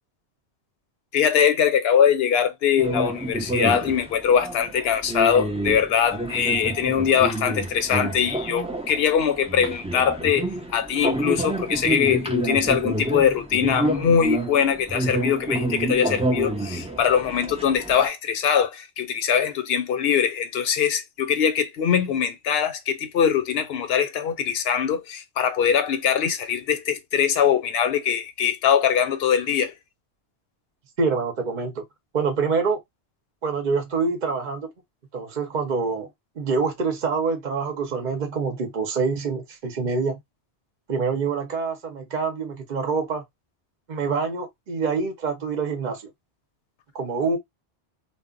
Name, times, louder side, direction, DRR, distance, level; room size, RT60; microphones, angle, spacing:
voice 1, 1.1-29.7, left 8 dB, 70° left, 0.8 m, -22 dB
sound 1, 2.8-18.1, right 1 dB, 10° right, 0.4 m, -28 dB
voice 2, 31.0-31.8 32.1-32.8 33.4-34.7 35.1-36.1 36.4-40.2 40.9-43.2 43.9-46.0 46.9-47.4, right 4 dB, 50° right, 0.7 m, -26 dB
2.1 x 2.0 x 3.6 m
omnidirectional pair, 1.1 m